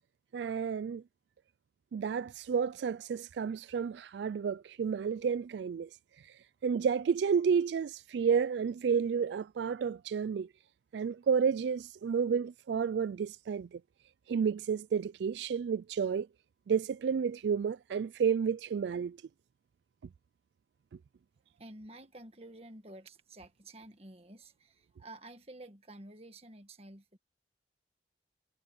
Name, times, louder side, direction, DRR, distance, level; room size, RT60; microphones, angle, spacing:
voice 1, 0.3-1.0 1.9-5.9 6.2-10.5 10.9-13.8 14.3-16.3 16.7-19.2, right 6 dB, 75° right, 0.3 m, -31 dB
voice 2, 21.6-27.2, right 1 dB, 35° right, 1.7 m, -51 dB
head